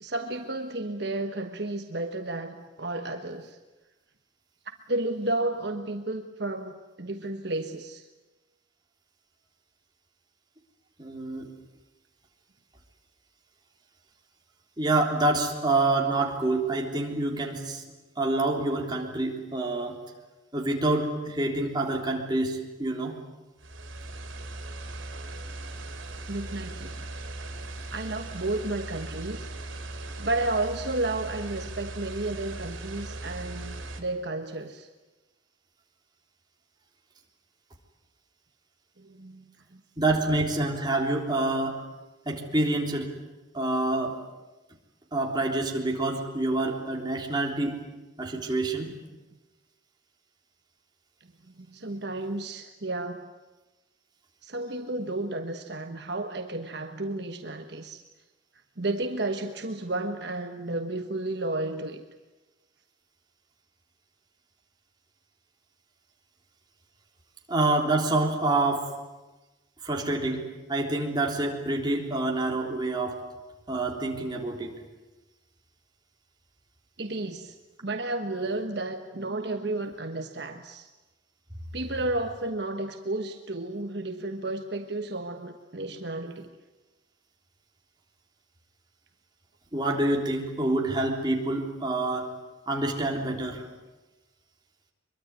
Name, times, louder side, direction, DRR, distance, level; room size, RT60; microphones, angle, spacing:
voice 1, 0.0-3.6 4.9-8.1 26.3-27.1 27.9-29.5 30.0-34.9 39.0-39.4 39.7-39.8 51.6-53.3 54.4-58.0 58.8-62.0 77.0-77.5 77.8-80.9 81.7-86.5, right 2 dB, 55° right, 6 dB, 1.3 m, -32 dB
voice 2, 11.0-11.5 14.8-17.8 18.2-20.0 20.5-23.1 40.0-41.8 42.3-43.1 43.5-44.2 45.1-47.8 48.2-48.9 67.5-68.9 69.8-70.4 70.7-73.2 73.7-74.7 89.7-92.3 92.7-93.6, right 2 dB, 20° right, 1 dB, 3.5 m, -27 dB
sound 1, 23.6-34.0, right 2 dB, 75° right, 3.8 m, -39 dB
23.5 x 23.0 x 9.5 m, 1.1 s
head